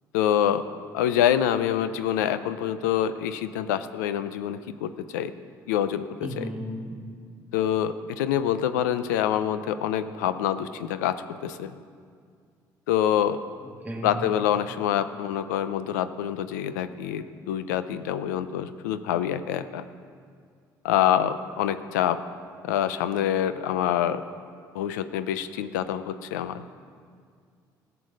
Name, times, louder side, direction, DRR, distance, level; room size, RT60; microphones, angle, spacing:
voice 1, 0.1-0.6 0.9-5.3 5.7-6.5 7.5-11.7 12.9-13.4 14.0-19.8 20.8-22.2 22.6-24.3 24.7-26.7, left 10 dB, 90° left, 12 dB, 0.5 m, -26 dB
voice 2, 6.2-7.1 13.6-14.2, equal, 15° right, 1 dB, 2.4 m, -35 dB
15.5 x 6.8 x 6.3 m, 2.1 s
hypercardioid pair, 65°, 9 cm